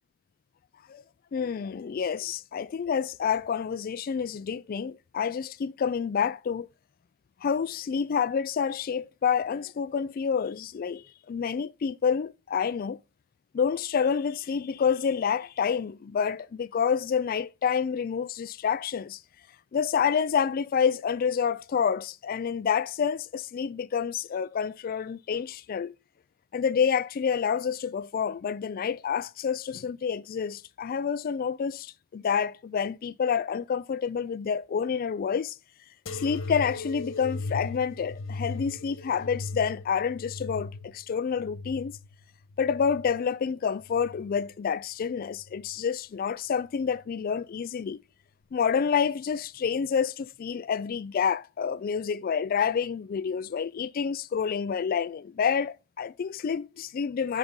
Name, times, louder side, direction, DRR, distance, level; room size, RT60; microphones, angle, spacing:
voice 1, 1.3-6.7 7.4-13.0 13.5-19.2 19.7-25.9 26.5-35.6 36.1-41.9 42.6-48.0 48.5-57.4, left 7 dB, 45° left, 0.3 m, -28 dB
sound 1, 36.1-43.3 43.8-44.6 45.3-45.9 46.8-46.9, left 3 dB, 70° left, 1.3 m, -38 dB
9.8 x 5.3 x 3.6 m
head